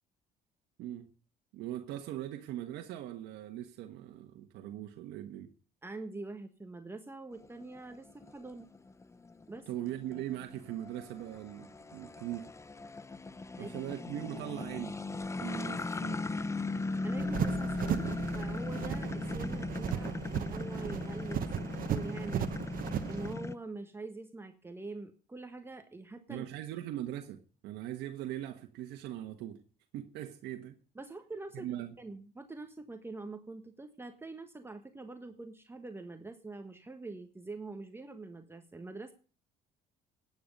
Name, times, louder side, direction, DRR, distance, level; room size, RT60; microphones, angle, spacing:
voice 1, 0.8-1.1 1.5-5.5 9.7-12.5 13.6-15.0 15.4-16.2 26.3-29.6 29.9-30.8 31.5-31.9, right 12 dB, 85° right, 1.3 m, -40 dB
voice 2, 5.8-8.7 9.5-9.7 13.6-13.7 17.0-22.6 23.0-26.4 30.9-31.7 32.0-39.1, right 3 dB, 15° right, 1.4 m, -44 dB
sound 1, 7.4-23.5, left 3 dB, 15° left, 0.7 m, -38 dB
sound 2, 17.2-23.3, right 9 dB, 55° right, 1.2 m, -36 dB
16.0 x 9.8 x 5.3 m
cardioid pair, 110°, 17 cm